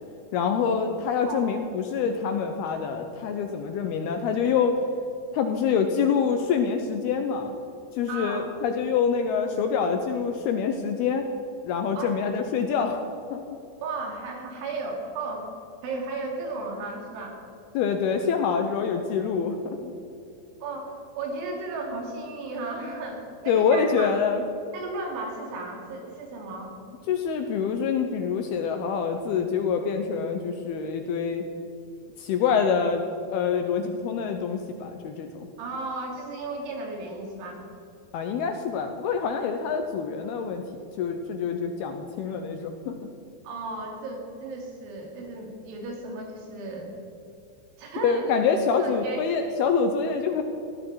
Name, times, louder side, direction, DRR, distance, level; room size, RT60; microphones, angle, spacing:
voice 1, 0.3-4.8 5.3-7.6 8.0-11.3 11.6-13.0 13.3-13.4 17.7-19.9 23.5-24.4 27.1-31.4 32.2-33.0 33.3-35.5 38.1-40.6 41.0-43.0 48.0-50.4, left 6 dB, 75° left, 5 dB, 2.4 m, -26 dB
voice 2, 8.1-8.5 11.9-12.1 13.8-15.5 15.8-17.4 20.6-24.2 24.7-26.7 35.6-37.6 43.4-46.9 47.8-48.4 48.8-49.2, right 3 dB, 85° right, 1 dB, 5.0 m, -34 dB
18.5 x 15.0 x 4.8 m, 2.7 s
omnidirectional pair, 5.3 m